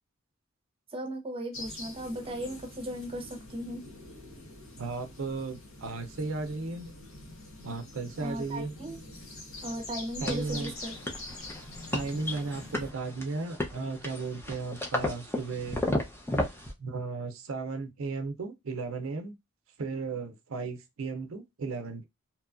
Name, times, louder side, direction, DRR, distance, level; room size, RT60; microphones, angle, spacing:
voice 1, 0.9-3.8 8.2-9.0 9.6-10.9, right 1 dB, 25° right, 0.7 m, -37 dB
sound 1, 1.5-12.9, left 2 dB, 75° left, 0.9 m, -45 dB
voice 2, 4.8-6.9 7.6-8.7 10.2-10.7 11.9-15.8 16.8-19.3 19.8-22.1, right 3 dB, 70° right, 0.5 m, -35 dB
sound 2, 10.3-16.7, left 1 dB, 10° left, 0.5 m, -34 dB
2.8 x 2.3 x 2.3 m
head